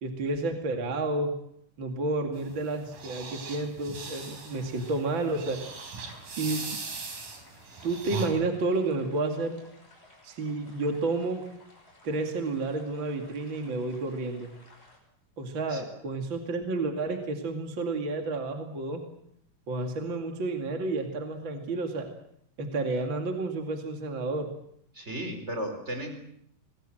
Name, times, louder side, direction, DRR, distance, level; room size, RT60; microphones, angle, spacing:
voice 1, 0.0-1.3 1.8-5.6 6.4-6.6 7.8-9.6 10.2-11.4 12.0-14.5 15.4-19.0 19.7-22.1 22.6-24.5, right 2 dB, 40° right, 4 dB, 2.5 m, -30 dB
sound 1, 2.4-8.3, right 5 dB, 65° right, 5.7 m, -39 dB
sound 2, 4.5-15.0, left 1 dB, 15° left, 6.8 m, -56 dB
voice 2, 24.9-26.1, equal, 20° right, 6 dB, 4.5 m, -35 dB
25.5 x 20.5 x 7.7 m, 0.70 s
omnidirectional pair, 4.1 m